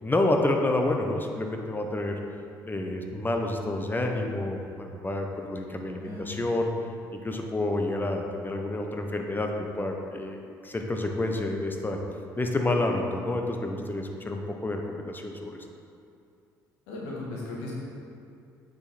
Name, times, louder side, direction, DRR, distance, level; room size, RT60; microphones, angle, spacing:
voice 1, 0.0-2.2 2.6-6.7 7.1-10.4 10.6-12.0 12.4-15.6, left 2 dB, 20° left, 3 dB, 1.1 m, -29 dB
voice 2, 6.0-6.4 16.9-17.7, left 2 dB, 70° left, -5 dB, 1.9 m, -37 dB
8.8 x 5.4 x 4.4 m, 2.5 s
hypercardioid pair, 55°, 10 cm